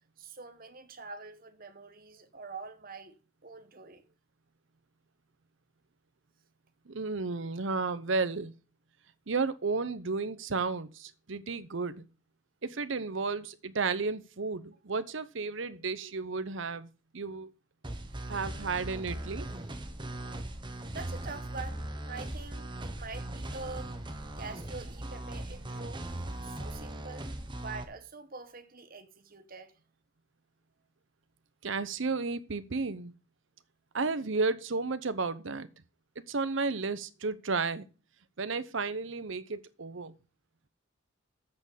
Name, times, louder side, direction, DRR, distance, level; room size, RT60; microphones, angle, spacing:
voice 1, 0.2-4.1 20.9-24.0 24.4-26.1 26.4-29.7, right 4 dB, 45° right, 1.2 m, -45 dB
voice 2, 6.9-8.5 9.3-12.1 12.6-17.5 18.3-19.5 31.6-33.1 33.9-35.7 36.3-37.8 38.4-40.2, right 4 dB, 65° right, 0.8 m, -33 dB
sound 1, 17.8-27.8, right 1 dB, 25° right, 1.1 m, -39 dB
7.7 x 6.4 x 7.3 m
head